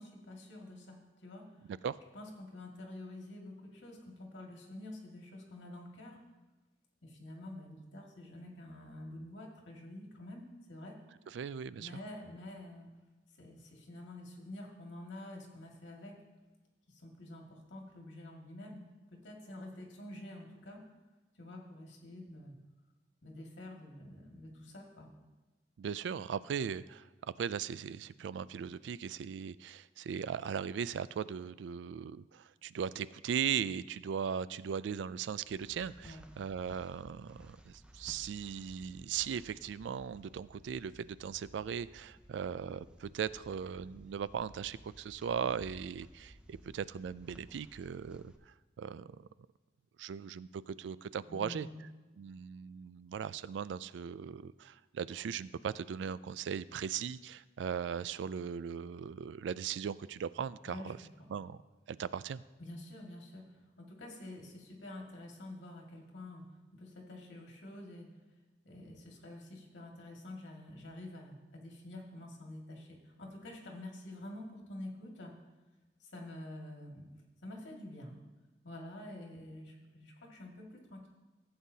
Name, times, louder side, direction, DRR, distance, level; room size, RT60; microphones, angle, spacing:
voice 1, 0.0-1.7 2.1-6.2 7.0-11.0 11.8-12.9 13.4-16.2 16.9-18.8 19.1-20.8 21.4-22.6 23.2-25.1 36.0-36.2 51.3-51.8 60.7-60.9 61.2-61.3 62.6-68.1 68.6-75.3 76.0-77.1 77.4-78.2 78.6-81.1, left 1 dB, 85° left, -1 dB, 2.0 m, -48 dB
voice 2, 11.3-12.0 25.8-27.1 27.4-49.3 50.0-51.7 52.2-61.0 61.3-61.6 61.9-62.4, right 7 dB, 75° right, 17 dB, 0.3 m, -38 dB
sound 1, 35.4-48.4, right 1 dB, 5° right, 0.4 m, -57 dB
15.0 x 7.9 x 2.8 m, 1.2 s
head